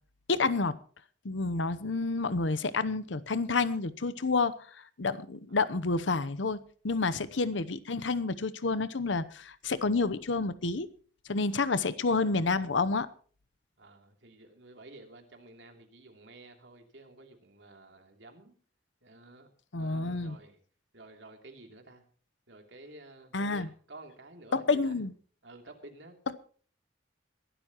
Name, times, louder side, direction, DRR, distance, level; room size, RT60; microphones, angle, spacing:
voice 1, 0.3-0.8 1.2-4.5 5.0-10.9 11.3-13.1 19.7-20.4 23.3-23.7 24.5-25.1, left 3 dB, 75° left, 0.9 m, -29 dB
voice 2, 7.0-7.3 13.8-18.5 19.0-19.5 19.8-20.6 20.9-22.0 22.5-24.9 25.4-26.2, right 2 dB, 70° right, 2.9 m, -52 dB
22.5 x 12.0 x 3.0 m
head